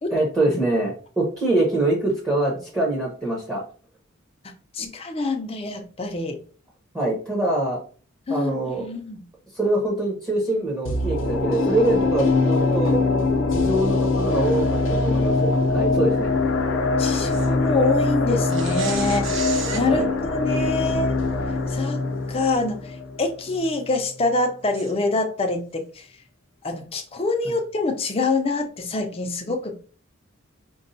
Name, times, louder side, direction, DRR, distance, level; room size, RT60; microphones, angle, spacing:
voice 1, 0.1-3.6 4.8-4.9 6.9-7.8 8.3-8.9 9.5-13.0 13.5-16.3 19.9-20.1 27.4-27.6, right 2 dB, 15° right, 0.8 m, -24 dB
voice 2, 4.7-6.4 8.3-9.2 17.0-21.1 21.7-22.0 22.3-26.1 26.6-29.8, left 2 dB, 30° left, 0.5 m, -25 dB
sound 1, 10.8-23.9 24.3-24.4, left 3 dB, 65° left, 0.7 m, -23 dB
sound 2, 17.3-17.5 18.5-19.9 21.7-21.8 22.4-22.5 24.7-24.9, right 4 dB, 70° right, 0.7 m, -33 dB
5.2 x 2.3 x 2.6 m
head